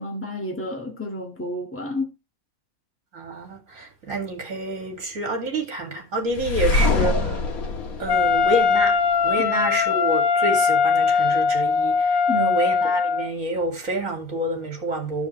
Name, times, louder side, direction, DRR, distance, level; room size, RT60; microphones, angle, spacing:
voice 1, 0.0-2.1 12.3-12.5, left 1 dB, 10° left, 1.7 m, -30 dB
voice 2, 3.1-7.4 8.0-9.0 9.2-15.3, right 1 dB, 65° right, 2.7 m, -28 dB
sound 1, 6.3-9.3, left 3 dB, 80° left, 1.9 m, -24 dB
Wind instrument woodwind instrument, 8.1-13.3, left 5 dB, 55° left, 0.6 m, -20 dB
11.5 x 6.7 x 3.2 m
omnidirectional pair, 1.5 m